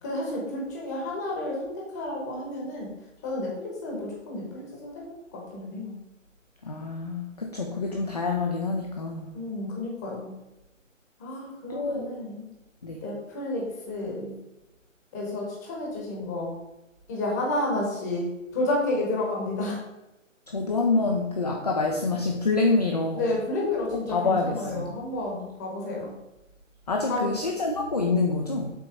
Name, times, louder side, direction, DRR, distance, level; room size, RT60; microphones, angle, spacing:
voice 1, 0.0-2.9 3.2-4.9 5.3-6.0 9.3-10.3 11.2-12.4 13.0-14.4 15.1-16.5 17.1-19.8 23.1-26.1 27.1-27.4, left 2 dB, 15° left, -2 dB, 1.1 m, -31 dB
voice 2, 6.6-9.3 11.7-12.1 12.8-13.0 20.5-23.2 23.9-24.9 26.9-28.7, left 3 dB, 30° left, 2 dB, 0.5 m, -26 dB
7.7 x 3.0 x 6.0 m, 0.98 s
figure-of-eight pair, 155°, 39 cm